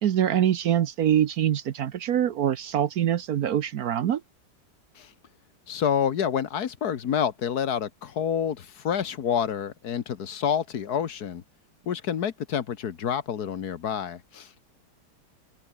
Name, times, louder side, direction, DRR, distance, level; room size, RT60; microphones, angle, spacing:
voice 1, 0.0-4.2, right 10 dB, 60° right, 1.2 m, -24 dB
voice 2, 5.7-11.4 11.9-14.7, left 8 dB, 60° left, 1.6 m, -28 dB
open air
omnidirectional pair, 1.9 m